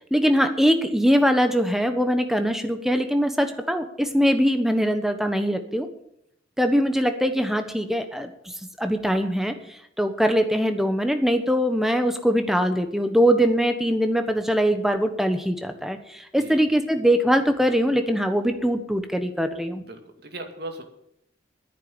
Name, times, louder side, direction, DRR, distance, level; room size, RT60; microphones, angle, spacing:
voice 1, 0.1-5.9 6.6-8.3 8.8-9.5 10.0-19.8, equal, ahead, 7 dB, 1.2 m, -22 dB
voice 2, 16.4-16.7 19.8-20.8, right 2 dB, 55° right, 4 dB, 2.4 m, -38 dB
10.5 x 9.4 x 9.6 m, 0.76 s
head